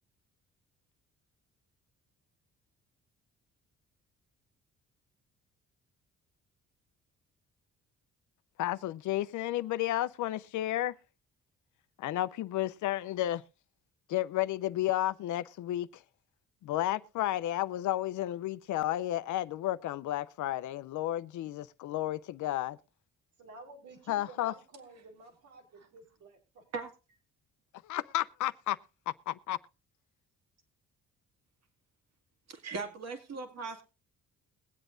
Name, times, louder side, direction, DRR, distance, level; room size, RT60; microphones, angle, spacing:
voice 1, 8.6-10.9 12.0-13.4 14.1-16.0 16.6-22.8 24.1-24.5 27.8-28.8 29.3-29.6, left 14 dB, 75° left, 0.6 m, -32 dB
voice 2, 23.4-26.6, right 3 dB, 75° right, 4.2 m, -52 dB
voice 3, 32.5-33.8, right 4 dB, 60° right, 2.2 m, -38 dB
22.0 x 8.1 x 2.5 m
cardioid pair, 90°, 30 cm